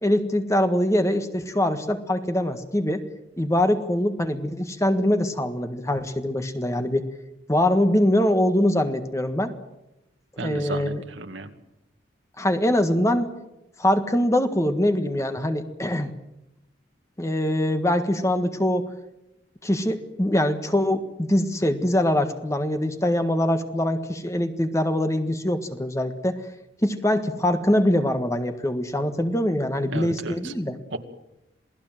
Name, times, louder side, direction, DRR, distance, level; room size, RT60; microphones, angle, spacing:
voice 1, 0.0-3.0 3.4-7.0 7.5-9.5 10.4-11.0 12.4-13.3 13.8-16.1 17.2-18.9 19.6-26.4 26.8-30.8, left 1 dB, 15° left, 7 dB, 1.6 m, -23 dB
voice 2, 10.4-11.5 29.8-30.5 30.9-31.0, right 2 dB, 80° right, 6 dB, 2.3 m, -33 dB
27.5 x 18.5 x 7.7 m, 0.92 s
head